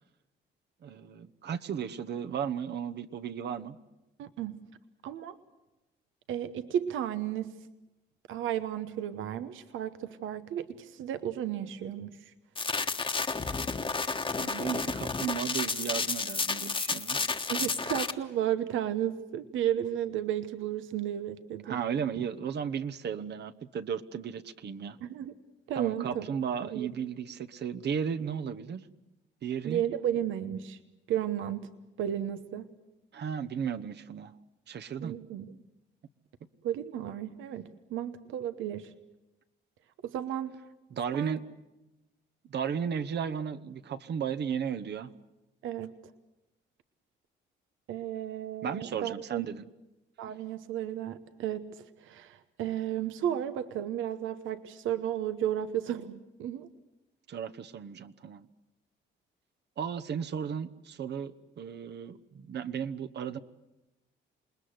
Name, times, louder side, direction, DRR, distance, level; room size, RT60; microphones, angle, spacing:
voice 1, 0.8-3.8 14.4-17.2 21.7-25.0 25.7-28.8 29.4-29.8 33.1-34.3 34.7-35.1 40.9-41.4 42.5-45.1 48.6-49.6 57.3-58.4 59.8-63.4, right 7 dB, 60° right, 10 dB, 1.1 m, -35 dB
voice 2, 4.2-4.6 5.0-5.4 6.3-7.5 8.3-12.3 17.5-21.8 25.0-25.3 25.7-26.3 26.6-26.9 29.6-30.8 31.1-31.7 32.0-32.7 35.0-35.5 36.6-38.9 40.0-40.5 41.1-41.4 45.6-45.9 47.9-49.4 50.2-51.7 52.0-56.7, right 11 dB, 85° right, 11 dB, 1.1 m, -33 dB
sound 1, 12.6-18.1, left 4 dB, 25° left, 1.3 m, -31 dB
28.0 x 20.0 x 7.9 m, 0.97 s
cardioid pair, 90°, 20 cm